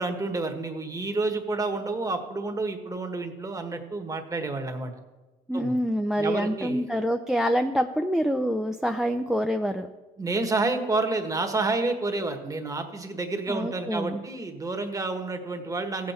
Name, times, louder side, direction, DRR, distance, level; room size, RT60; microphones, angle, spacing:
voice 1, 0.0-4.9 5.5-5.7 6.2-6.8 10.2-16.1, right 3 dB, 20° right, 5 dB, 1.4 m, -29 dB
voice 2, 5.5-9.9 13.5-14.2, equal, 5° right, 7 dB, 0.5 m, -26 dB
15.5 x 7.7 x 4.4 m, 1.2 s
cardioid pair, 110°, 17 cm